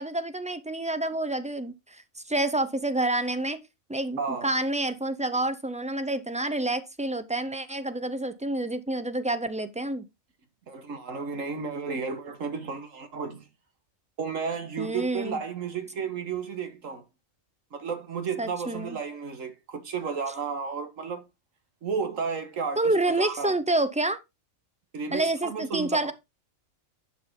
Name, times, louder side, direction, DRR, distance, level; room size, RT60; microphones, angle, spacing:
voice 1, 0.0-2.0 2.3-3.6 3.9-10.0 14.8-15.4 18.4-19.0 22.8-24.2 25.1-26.1, right 2 dB, 10° right, 0.4 m, -28 dB
voice 2, 4.2-4.5 10.7-13.5 14.2-17.0 17.7-21.2 21.8-23.5 24.9-26.1, right 5 dB, 75° right, 1.8 m, -33 dB
11.0 x 5.9 x 3.7 m
omnidirectional pair, 1.4 m